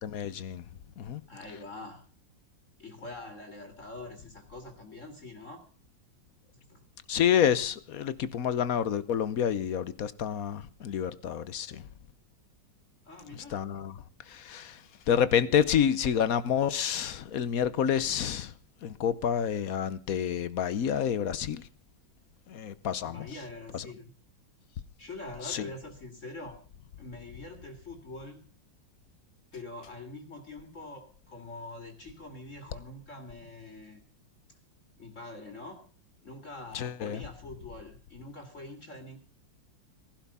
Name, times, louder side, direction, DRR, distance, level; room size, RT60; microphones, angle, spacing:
voice 1, 0.0-0.6 1.0-1.2 7.1-11.9 13.3-13.9 14.3-14.8 15.1-18.5 18.8-21.7 22.5-23.3 23.7-23.9 25.4-25.7 36.7-37.2, left 8 dB, 60° left, 1.1 m, -28 dB
voice 2, 1.3-2.1 2.8-5.6 6.7-6.8 13.0-13.6 23.0-24.1 25.0-26.6 27.0-28.4 29.5-34.0 35.0-35.8 36.2-39.2, left 2 dB, 40° left, 2.6 m, -44 dB
18.0 x 12.0 x 5.5 m
omnidirectional pair, 2.0 m